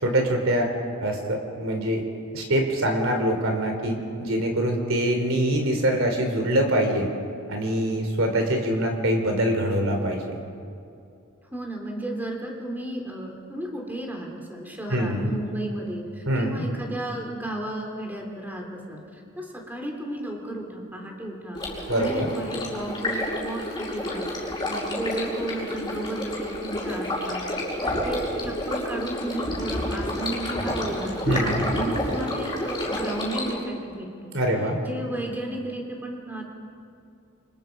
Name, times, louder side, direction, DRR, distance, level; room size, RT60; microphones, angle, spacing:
voice 1, 0.0-0.7 1.0-2.0 2.3-7.1 7.5-10.2 14.9-15.3 16.3-16.6 21.9-22.3 31.3-31.6 34.3-34.8, right 1 dB, 65° right, 3 dB, 3.8 m, -24 dB
voice 2, 11.5-27.4 27.8-34.3 34.8-36.5, right 1 dB, 10° right, 0 dB, 3.2 m, -33 dB
Stream, 21.5-33.5, left 1 dB, 20° left, 6.6 m, -29 dB
29.5 x 25.5 x 5.3 m, 2.5 s
head